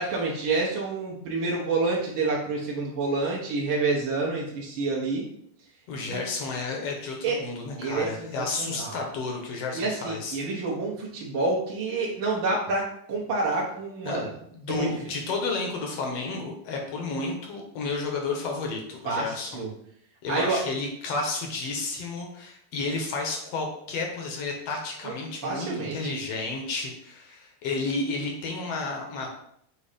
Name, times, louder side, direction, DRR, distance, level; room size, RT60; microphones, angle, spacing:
voice 1, 0.0-5.2 6.1-6.2 7.2-7.4 7.8-9.0 9.7-14.3 14.7-14.9 19.0-19.7 20.3-20.6 25.0-25.1 25.4-26.2, right 3 dB, 65° right, -4 dB, 1.2 m, -28 dB
voice 2, 5.9-10.4 14.0-14.2 14.4-19.5 20.2-29.3, left 3 dB, 65° left, 1 dB, 1.7 m, -31 dB
7.0 x 2.7 x 5.0 m, 0.69 s
omnidirectional pair, 3.7 m